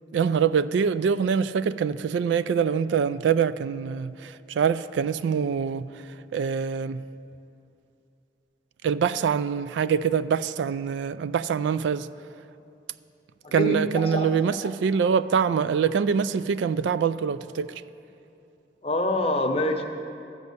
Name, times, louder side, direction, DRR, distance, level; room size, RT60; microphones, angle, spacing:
voice 1, 0.1-5.9 6.3-7.0 8.8-12.1 13.5-17.7, right 6 dB, 80° right, 0.3 m, -24 dB
voice 2, 13.4-14.3 18.8-19.9, left 1 dB, 35° left, 0.7 m, -26 dB
13.0 x 5.4 x 8.2 m
head